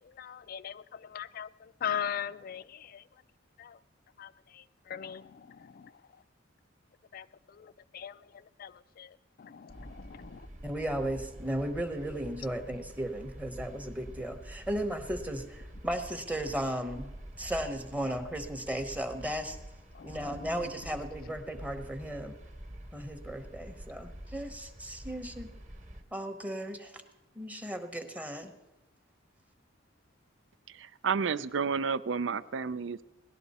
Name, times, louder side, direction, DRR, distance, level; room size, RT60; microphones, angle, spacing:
voice 1, 0.0-3.1 3.6-3.8 4.2-6.2 7.1-10.5 19.9-20.5, left 8 dB, 50° left, 16 dB, 0.4 m, -41 dB
sound 1, 9.7-26.0, equal, 35° right, 1.1 m, -47 dB
voice 2, 10.6-17.1 17.4-19.6 20.0-22.4 22.9-25.5 26.1-27.0 27.3-28.5, right 1 dB, 5° right, 6 dB, 0.9 m, -35 dB
voice 3, 30.7-33.0, right 5 dB, 70° right, 14 dB, 0.5 m, -31 dB
18.5 x 11.5 x 4.2 m, 1.0 s
head